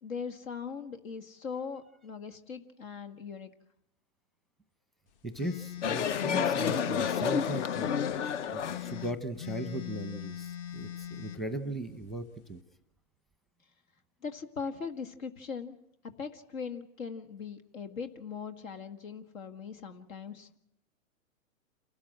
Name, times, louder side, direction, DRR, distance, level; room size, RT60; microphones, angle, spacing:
voice 1, 0.0-3.5 14.2-15.8 16.2-20.6, left 5 dB, 75° left, 8 dB, 1.8 m, -40 dB
voice 2, 5.2-7.9 8.5-12.6, right 1 dB, ahead, 9 dB, 0.8 m, -38 dB
sound 1, 5.4-8.2 8.6-11.4, left 11 dB, 40° left, 1.2 m, -41 dB
sound 2, 5.8-9.1, left 7 dB, 60° left, 0.9 m, -30 dB
28.5 x 13.0 x 7.6 m, 0.77 s
hypercardioid pair, 140°, 41 cm